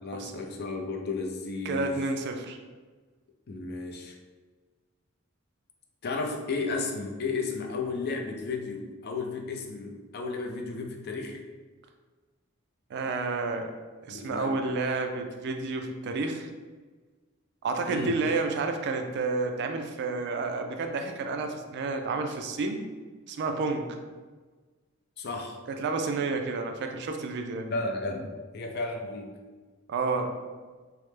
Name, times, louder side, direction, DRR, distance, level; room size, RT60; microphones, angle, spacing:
voice 1, 0.0-2.0 3.5-4.2 6.0-11.4 14.1-14.8 17.9-18.2 25.2-25.6 27.7-29.3, left 3 dB, 50° left, 2 dB, 0.4 m, -33 dB
voice 2, 1.7-2.6 12.9-13.7 14.1-16.5 17.6-22.8 23.3-23.9 25.7-27.7 29.9-30.3, right 3 dB, 55° right, 5 dB, 0.3 m, -30 dB
3.1 x 2.0 x 3.2 m, 1.4 s
head